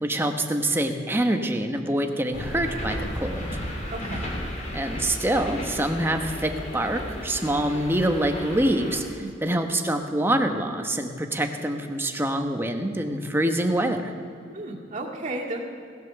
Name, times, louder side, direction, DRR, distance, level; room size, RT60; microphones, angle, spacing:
voice 1, 0.0-3.5 4.7-9.0 9.4-14.1, right 1 dB, 10° right, 5 dB, 1.0 m, -25 dB
sound 1, 2.3-9.0, equal, 40° left, 3.1 m, -34 dB
voice 2, 3.9-4.2 9.2-9.5 14.5-15.6, right 2 dB, 40° right, -1 dB, 2.1 m, -33 dB
17.5 x 8.1 x 6.9 m, 2.4 s
head